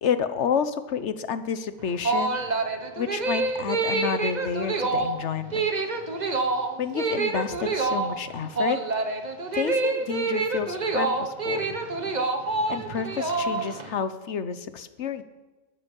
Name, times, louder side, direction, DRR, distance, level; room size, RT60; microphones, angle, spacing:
voice 1, 0.0-2.4 3.0-5.7 6.8-8.8 9.5-11.6 12.7-15.2, left 7 dB, 65° left, 12 dB, 1.2 m, -30 dB
sound 1, 1.8-13.9, right 3 dB, 35° right, 1.2 m, -27 dB
15.5 x 12.5 x 5.4 m, 1.2 s
omnidirectional pair, 1.3 m